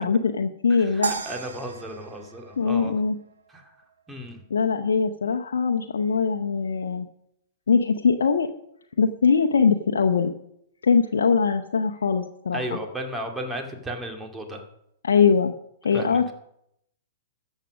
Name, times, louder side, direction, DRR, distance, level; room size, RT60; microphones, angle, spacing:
voice 1, 0.0-1.1 2.6-3.1 4.5-7.1 7.7-8.5 9.0-10.3 10.8-12.6 15.0-15.5 15.8-16.3, left 5 dB, 80° left, 3 dB, 0.8 m, -21 dB
voice 2, 0.8-2.9 3.5-3.7 4.1-4.4 12.5-14.6 15.9-16.3, right 1 dB, 10° right, 3 dB, 2.3 m, -34 dB
sound 1, 1.0-3.4, right 5 dB, 85° right, 1.5 m, -33 dB
13.5 x 7.4 x 6.3 m, 0.75 s
hypercardioid pair, 120°, 0 cm